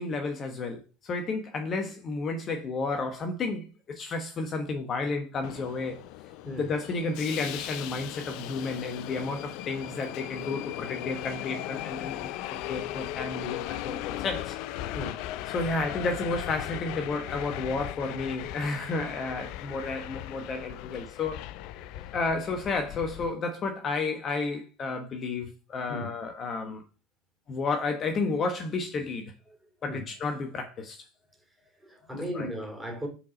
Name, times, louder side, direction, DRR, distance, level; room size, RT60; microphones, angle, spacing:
voice 1, 0.0-6.0 6.5-14.6 15.5-21.5 22.1-26.8 27.5-29.3 29.8-31.1 32.1-32.5, left 3 dB, 35° left, 1.2 m, -32 dB
Subway metro underground, 5.4-23.3, left 14 dB, 60° left, 0.5 m, -38 dB
voice 2, 14.9-15.3 19.7-19.8 21.8-22.2 25.9-26.2 29.5-29.6 29.9-30.1 31.6-33.1, equal, 5° right, 2.9 m, -37 dB
5.7 x 4.8 x 5.2 m
hypercardioid pair, 80°, 0 cm